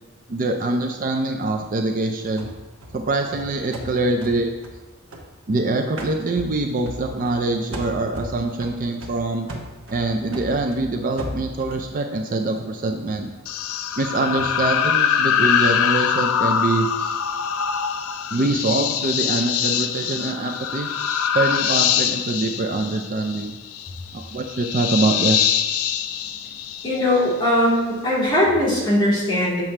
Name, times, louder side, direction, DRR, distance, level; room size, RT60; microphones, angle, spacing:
voice 1, 0.3-2.5 2.9-4.5 5.5-9.5 9.9-13.3 14.0-17.2 18.3-20.9 21.3-23.6 24.1-25.6, right 2 dB, 40° right, 4 dB, 0.5 m, -24 dB
sound 1, 2.4-5.6 6.0-7.4 7.7-11.9, right 1 dB, 65° right, 1.0 m, -37 dB
sound 2, 13.5-27.3, left 8 dB, 80° left, 0.4 m, -23 dB
voice 2, 26.8-29.6, left 1 dB, 20° left, -7 dB, 2.1 m, -20 dB
7.3 x 5.8 x 3.3 m, 1.2 s
head